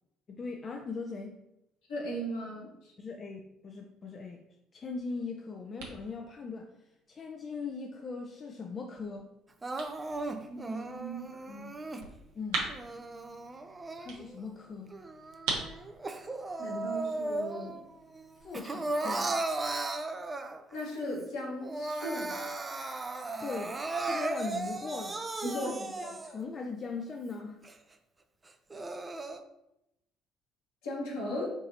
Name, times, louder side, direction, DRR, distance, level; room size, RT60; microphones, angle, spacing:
voice 1, 0.3-1.4 3.0-4.4 4.7-6.7 7.1-9.3 12.4-12.7 14.0-14.9 18.4-19.3 23.4-23.8 24.0-25.2 25.5-25.7 26.0-27.6, left 4 dB, 40° left, 2 dB, 0.4 m, -39 dB
voice 2, 1.9-2.9 10.5-11.8 16.6-17.8 19.0-19.1 20.7-22.3 25.4-26.1 30.8-31.5, equal, 70° left, -4 dB, 1.3 m, -37 dB
Punching-Hits, 4.9-18.4, right 3 dB, 70° right, 0.8 m, -44 dB
Crying sobbing, 9.6-12.0 12.7-14.4 14.9-17.8 18.1-20.8 21.2-21.3 21.6-26.4 27.0-27.1 27.6-27.7 28.5-29.4, right 2 dB, 25° right, 0.4 m, -36 dB
4.4 x 2.7 x 2.8 m, 0.85 s
figure-of-eight pair, 50°, 0 cm